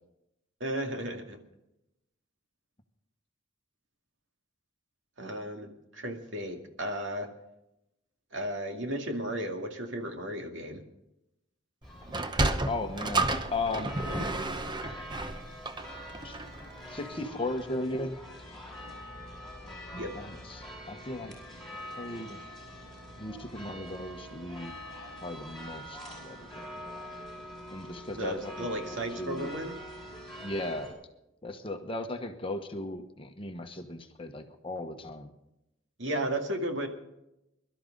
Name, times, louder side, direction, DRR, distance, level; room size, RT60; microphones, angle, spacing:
voice 1, 0.6-1.4 5.2-7.3 8.3-10.8 20.0-20.2 28.1-29.8 36.0-36.9, right 1 dB, 65° right, 3 dB, 2.3 m, -34 dB
sound 1, 11.8-30.9, equal, ahead, 5.2 m, -44 dB
Sliding door, 12.0-16.7, right 2 dB, 25° right, 0.8 m, -31 dB
voice 2, 12.7-13.9 16.2-16.4 16.9-18.2 19.6-21.4 22.0-22.4 23.2-24.7 25.2-26.8 27.7-29.5 30.4-31.0 31.4-35.3, left 2 dB, 25° left, 5 dB, 1.1 m, -37 dB
23.0 x 12.5 x 3.9 m, 0.87 s
head